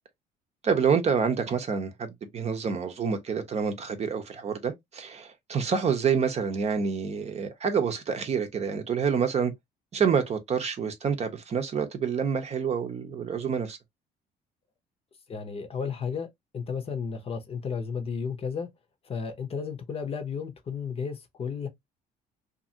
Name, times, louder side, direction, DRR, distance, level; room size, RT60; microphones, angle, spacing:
voice 1, 0.6-9.5 9.9-13.8, right 6 dB, 40° right, 0.7 m, -27 dB
voice 2, 15.3-18.7 19.0-21.7, left 6 dB, 35° left, 0.7 m, -33 dB
2.8 x 2.5 x 2.7 m
cardioid pair, 110°, 17 cm